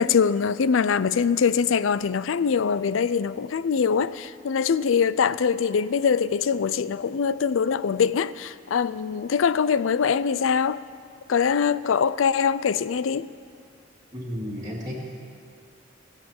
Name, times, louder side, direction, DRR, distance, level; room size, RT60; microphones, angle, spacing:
voice 1, 0.0-10.8 11.3-13.3, left 6 dB, 90° left, 0.4 m, -23 dB
voice 2, 14.1-15.0, equal, 20° right, 2.2 m, -33 dB
19.5 x 7.3 x 8.8 m
head